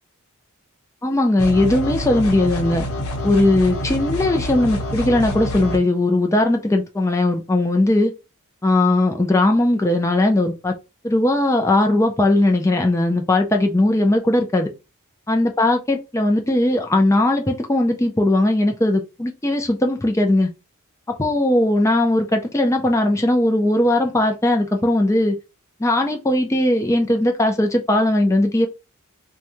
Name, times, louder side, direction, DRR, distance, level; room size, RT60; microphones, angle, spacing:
voice 1, 1.0-2.8 3.2-8.1 8.6-10.7 11.0-14.7 15.3-20.5 21.2-25.4 25.8-28.7, left 1 dB, 15° left, 0.4 m, -18 dB
sound 1, 1.4-5.8, left 1 dB, 80° left, 0.8 m, -27 dB
3.1 x 2.2 x 2.5 m
head